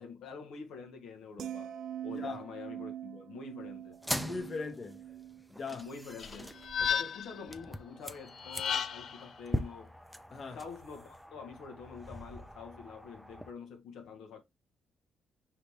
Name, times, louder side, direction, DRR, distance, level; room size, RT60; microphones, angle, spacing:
voice 1, 0.0-1.7 2.0-4.0 5.7-6.5 6.8-9.9 10.4-14.4, left 5 dB, 80° left, 1.1 m, -46 dB
sound 1, 1.4-7.7 8.0-8.3, right 11 dB, 65° right, 0.3 m, -45 dB
sound 2, 3.9-13.5, equal, ahead, 0.5 m, -42 dB
voice 2, 4.1-5.0 5.5-5.9 10.3-10.6, left 4 dB, 45° left, 1.1 m, -39 dB
sound 3, 6.2-7.4 8.4-9.2, left 7 dB, 60° left, 0.6 m, -33 dB
4.9 x 3.0 x 3.4 m
cardioid pair, 90°, 0 cm